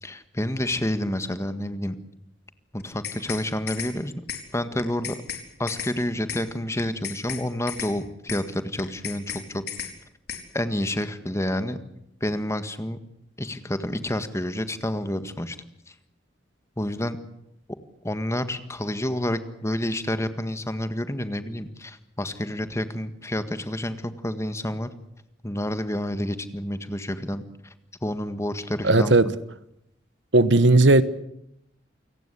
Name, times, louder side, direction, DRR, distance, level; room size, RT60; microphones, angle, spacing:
voice 1, 0.0-1.9 2.7-4.1 4.5-5.2 5.6-9.6 10.5-11.8 12.2-13.0 13.4-15.6 16.8-17.2 18.0-24.9 25.4-27.4 28.0-29.3, left 1 dB, 15° left, 1.7 m, -29 dB
sound 1, 2.8-3.4 3.7-3.9 4.3-4.4 4.8-5.4 5.7-5.9 6.3-6.4 6.8-7.4 7.7-7.9 8.3-8.4 8.8-9.4 9.7-9.9 10.3-10.4, left 8 dB, 60° left, 4.4 m, -33 dB
voice 2, 28.8-29.3 30.3-31.0, right 2 dB, 75° right, 1.3 m, -16 dB
29.0 x 18.0 x 8.4 m
head